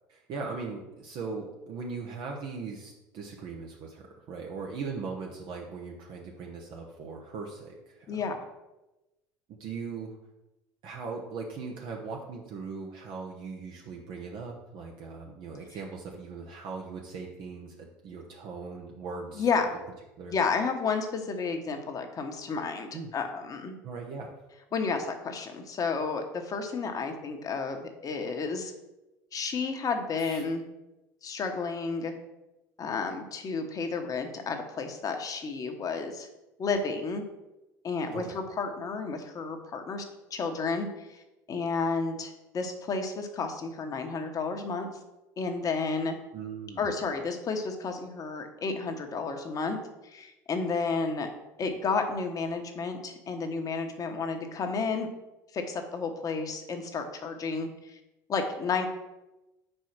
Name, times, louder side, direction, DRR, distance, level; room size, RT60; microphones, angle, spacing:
voice 1, 0.1-8.2 9.5-10.1 10.8-17.8 18.0-19.5 20.2-20.3 22.9-23.1 23.8-24.3 30.2-30.4 38.1-38.3 46.3-46.9, right 4 dB, 55° right, 0 dB, 0.9 m, -39 dB
voice 2, 19.3-19.7 20.3-23.8 24.7-28.7 29.3-30.6 31.2-32.1 32.8-36.3 36.6-37.2 37.8-40.0 40.3-41.2 41.5-44.9 45.4-46.1 46.8-49.8 50.0-51.3 51.6-55.1 55.5-58.0 58.3-58.9, left 4 dB, 40° left, 5 dB, 1.0 m, -31 dB
4.7 x 4.5 x 5.9 m, 0.99 s
hypercardioid pair, 75°, 9 cm